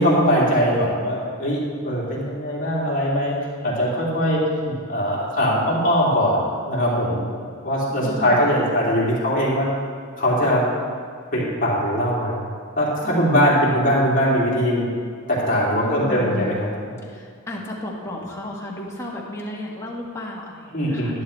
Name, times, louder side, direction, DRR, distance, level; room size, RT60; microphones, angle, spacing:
voice 1, 0.0-3.3 3.6-9.7 10.2-10.6 11.3-12.5 12.8-14.9 15.3-16.7 20.7-21.2, equal, 40° left, -6 dB, 2.6 m, -21 dB
voice 2, 8.0-8.4 13.0-13.3 15.8-16.5 17.0-21.2, left 1 dB, 15° left, -4 dB, 1.5 m, -33 dB
11.0 x 11.0 x 3.2 m, 2.1 s
head